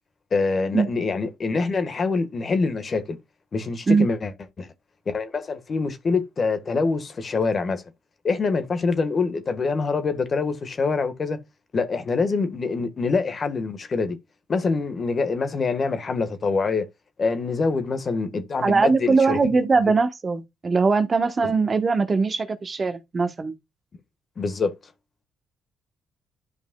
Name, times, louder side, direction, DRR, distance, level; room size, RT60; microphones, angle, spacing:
voice 1, 0.3-3.2 3.5-4.3 4.6-4.7 5.1-7.8 8.2-11.4 11.7-14.2 14.5-16.9 17.2-19.5 21.4-21.5 24.4-24.7, left 4 dB, 40° left, 1.5 m, -25 dB
voice 2, 18.6-23.5, right 4 dB, 35° right, 1.1 m, -21 dB
11.5 x 5.1 x 2.3 m
cardioid pair, 90°, 0 cm